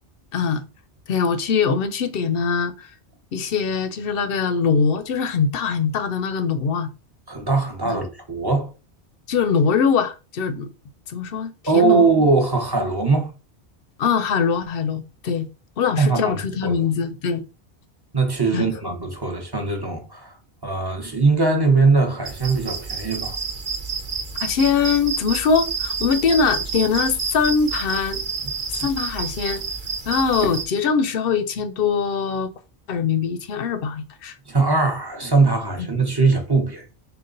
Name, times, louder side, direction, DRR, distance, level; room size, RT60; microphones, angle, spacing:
voice 1, 0.3-0.6 1.1-2.9 3.3-6.9 7.8-8.0 9.3-10.7 11.1-12.0 14.0-15.5 15.8-17.4 18.5-18.7 24.4-28.2 28.7-29.6 30.0-32.5 32.9-34.4, left 6 dB, 65° left, 0.7 m, -22 dB
voice 2, 7.3-8.7 11.7-13.3 16.0-16.8 18.1-20.4 20.6-23.4 30.4-30.6 34.5-36.9, right 4 dB, 25° right, 0.8 m, -20 dB
sound 1, 22.3-30.6, right 5 dB, 50° right, 1.0 m, -29 dB
3.9 x 2.3 x 3.8 m
omnidirectional pair, 1.1 m